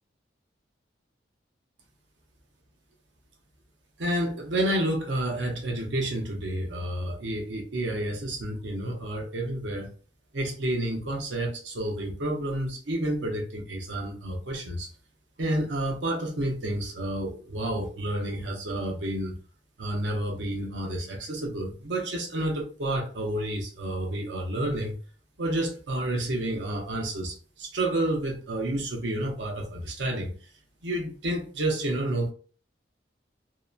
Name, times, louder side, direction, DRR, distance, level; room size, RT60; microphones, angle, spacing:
voice 1, 4.0-9.9 10.3-14.9 15.4-19.4 19.8-25.0 25.4-30.3 30.8-32.3, right 1 dB, 85° right, 0.8 m, -30 dB
2.8 x 2.1 x 2.4 m
head